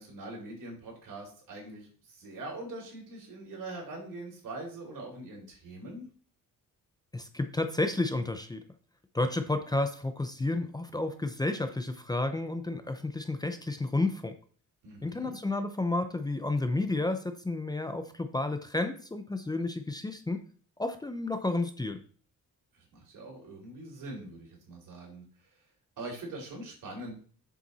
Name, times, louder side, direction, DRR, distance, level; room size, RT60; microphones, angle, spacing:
voice 1, 0.0-6.1 14.8-15.4 22.7-25.2 26.0-27.1, right 2 dB, 70° right, -1 dB, 4.5 m, -43 dB
voice 2, 7.1-8.6 9.1-14.3 15.0-20.4 20.8-22.0, left 2 dB, 10° left, 8 dB, 0.7 m, -31 dB
7.5 x 7.0 x 4.2 m, 0.44 s
cardioid pair, 130°, 33 cm